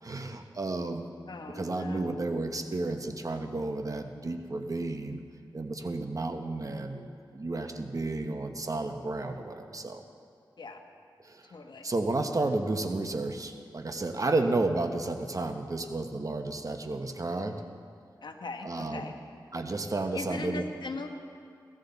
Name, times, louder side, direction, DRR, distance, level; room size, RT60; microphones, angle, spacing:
voice 1, 0.0-1.1 1.4-5.2 5.5-10.0 11.2-11.5 11.8-17.6 18.6-19.1 19.5-20.6, right 2 dB, 45° right, 5 dB, 1.0 m, -32 dB
voice 2, 1.3-2.3 10.6-10.8 11.5-11.9 18.2-19.2 20.1-21.1, left 3 dB, 65° left, 5 dB, 1.2 m, -39 dB
17.0 x 13.5 x 4.0 m, 2.3 s
cardioid pair, 55°, 8 cm